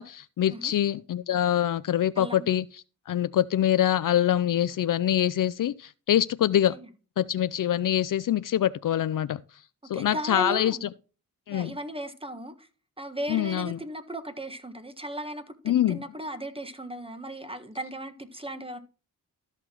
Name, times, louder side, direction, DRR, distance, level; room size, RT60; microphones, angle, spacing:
voice 1, 0.0-2.7 3.1-6.8 7.2-9.4 9.9-10.9 11.5-11.8 13.3-13.8 15.7-16.0, left 11 dB, 60° left, 0.5 m, -25 dB
voice 2, 9.9-10.9 11.5-12.7 13.0-15.6 15.9-18.8, right 1 dB, 15° right, 1.4 m, -36 dB
13.5 x 5.9 x 2.9 m
cardioid pair, 65°, 37 cm